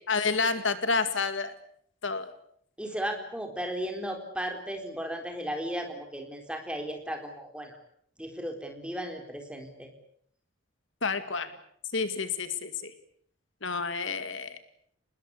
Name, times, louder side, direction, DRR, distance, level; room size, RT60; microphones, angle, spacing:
voice 1, 0.1-1.5 2.0-2.3 11.0-11.5 11.9-12.9 13.6-14.6, left 4 dB, 70° left, 10 dB, 2.1 m, -29 dB
voice 2, 2.8-7.8 8.2-9.9, equal, 5° right, 4 dB, 4.2 m, -35 dB
28.5 x 20.5 x 8.3 m, 0.65 s
head